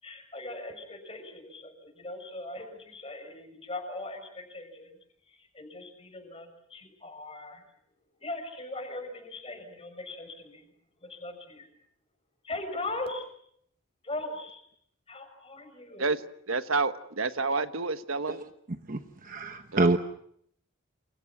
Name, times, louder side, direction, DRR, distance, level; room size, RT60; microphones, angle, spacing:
voice 1, 0.0-5.0 5.3-7.6 8.2-10.7 11.0-11.7 12.4-13.3 14.0-14.7 15.1-16.1, left 2 dB, 25° left, 6.6 m, -40 dB
voice 2, 16.5-18.4 19.7-19.8, right 3 dB, 75° right, 1.3 m, -29 dB
voice 3, 18.9-20.0, right 2 dB, 40° right, 1.0 m, -27 dB
29.0 x 28.0 x 6.1 m
head